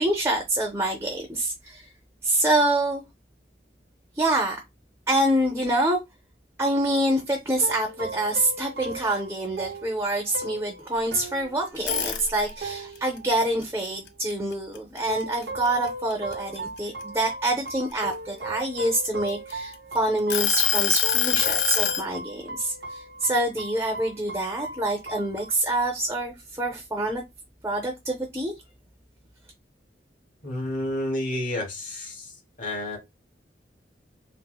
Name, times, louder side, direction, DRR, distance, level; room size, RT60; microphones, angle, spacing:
voice 1, 0.0-1.9 2.2-3.0 4.2-4.6 5.1-6.0 6.6-27.2 27.6-28.5, right 1 dB, 15° right, 0.5 m, -26 dB
sound 1, 7.6-14.2 15.1-25.9, right 2 dB, 60° right, 0.5 m, -38 dB
sound 2, 11.7-12.7 13.2-15.0 15.4-15.7 16.1-17.9 18.6-19.7 20.3-22.1, left 10 dB, 85° left, 0.5 m, -24 dB
voice 2, 30.4-32.3 32.6-33.0, left 1 dB, 45° left, 1.2 m, -30 dB
4.1 x 2.0 x 2.2 m
head